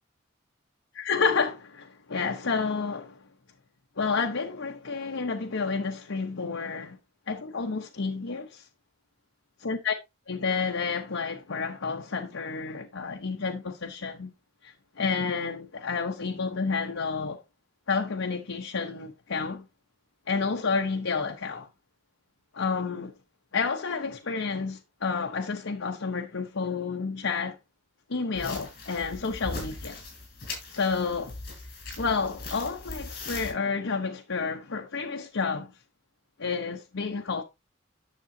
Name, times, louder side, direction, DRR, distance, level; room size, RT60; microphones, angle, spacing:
voice 1, 1.0-3.2 4.0-7.0 7.3-8.7 9.6-9.9 10.3-14.3 14.6-17.4 17.9-19.6 20.3-21.7 22.5-23.1 23.5-27.6 28.1-30.0 30.7-31.3 32.0-35.7 36.4-37.4, left 5 dB, 90° left, 0.9 m, -30 dB
sound 1, 28.4-33.5, left 2 dB, 50° left, 4.9 m, -39 dB
10.0 x 6.8 x 2.7 m
head